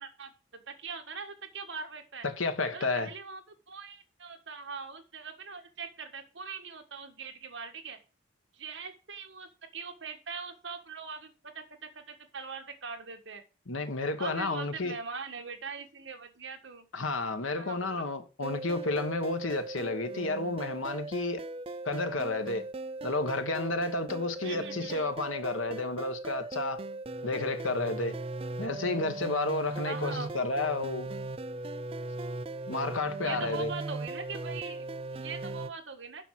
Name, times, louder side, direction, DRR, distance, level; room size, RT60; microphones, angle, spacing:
voice 1, 0.0-2.2 2.7-3.4 3.7-8.0 8.5-13.4 14.2-16.9 17.6-18.1 24.4-25.2 29.8-30.3 33.2-36.2, right 5 dB, 65° right, 1.7 m, -42 dB
voice 2, 2.2-3.1 13.7-15.0 16.9-21.4 21.8-22.7 23.0-26.8 27.2-28.2 28.6-31.1 32.7-33.7, left 3 dB, 90° left, 1.3 m, -31 dB
sound 1, 18.4-35.7, right 2 dB, 30° right, 0.4 m, -38 dB
6.9 x 6.0 x 7.5 m
head